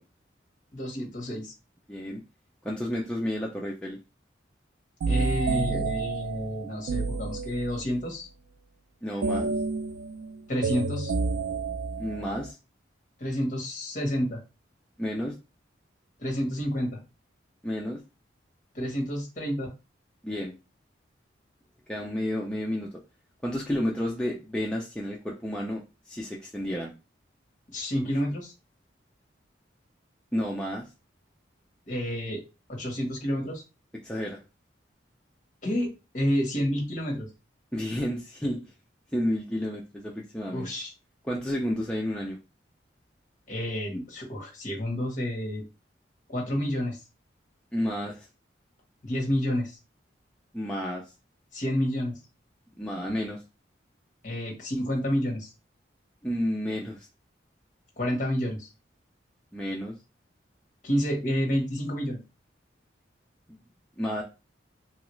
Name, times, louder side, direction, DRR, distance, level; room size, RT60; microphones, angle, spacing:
voice 1, 0.7-1.5 5.1-8.3 10.5-11.1 13.2-14.4 16.2-17.0 18.7-19.7 27.7-28.5 31.9-32.4 32.7-33.6 35.6-37.3 40.5-40.9 43.5-45.6 46.3-47.0 49.0-49.8 51.5-52.2 54.2-55.5 58.0-58.7 60.8-62.2, equal, 40° left, 1 dB, 1.0 m, -29 dB
voice 2, 1.9-2.2 2.6-4.0 9.0-9.5 12.0-12.6 15.0-15.4 17.6-18.0 20.2-20.5 21.9-22.9 23.4-25.8 26.1-26.9 30.3-30.9 34.0-34.4 37.7-38.7 39.1-40.7 41.2-42.4 47.7-48.3 50.5-51.0 52.8-53.4 56.2-57.1 59.5-60.0 63.5-63.6 64.0-64.2, equal, 5° left, -3 dB, 0.3 m, -31 dB
sound 1, 5.0-8.0 9.2-12.5, right 4 dB, 85° right, 0.3 m, -30 dB
3.0 x 2.4 x 3.0 m, 0.28 s
head